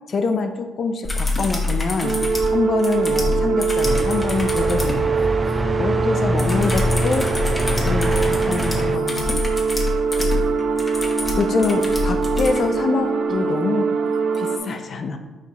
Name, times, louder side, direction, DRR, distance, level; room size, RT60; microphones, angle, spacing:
voice 1, 0.1-2.2 2.5-5.1 5.8-7.3 7.8-9.6 10.2-10.5 10.8-10.9 11.3-13.9 14.4-15.2, left 4 dB, 50° left, 7 dB, 0.7 m, -25 dB
sound 1, 1.0-5.0 6.4-12.6 14.3-14.4, left 2 dB, 20° left, 1.3 m, -26 dB
sound 2, 2.0-14.6, right 5 dB, 60° right, 1.0 m, -23 dB
sound 3, 3.9-9.0, right 1 dB, 20° right, 0.3 m, -25 dB
6.0 x 4.7 x 4.0 m, 1.3 s
cardioid pair, 90°, 0 cm